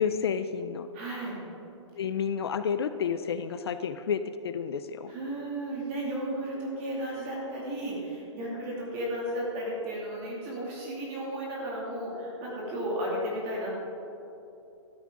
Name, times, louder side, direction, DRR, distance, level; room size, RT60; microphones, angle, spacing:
voice 1, 0.0-0.9 2.0-5.1, left 7 dB, 55° left, 11 dB, 0.5 m, -30 dB
voice 2, 0.9-1.4 5.1-13.7, right 1 dB, 25° right, -4 dB, 2.6 m, -34 dB
13.0 x 12.5 x 3.8 m, 2.8 s
hypercardioid pair, 175°, 16 cm